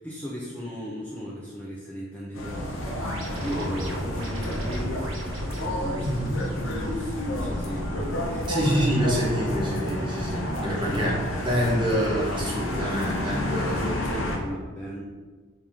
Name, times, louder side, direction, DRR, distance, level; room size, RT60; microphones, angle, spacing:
voice 1, 0.0-6.1 6.5-8.5 10.9-11.2 13.6-15.0, equal, 5° left, -6 dB, 0.4 m, -36 dB
sound 1, 2.3-14.4, left 1 dB, 80° left, 0.8 m, -30 dB
sound 2, 2.8-7.8, right 1 dB, 80° right, 0.9 m, -40 dB
voice 2, 6.0-6.5 8.5-11.2 11.4-13.8, equal, 25° right, -4 dB, 1.1 m, -26 dB
4.3 x 3.5 x 3.6 m, 1.4 s
head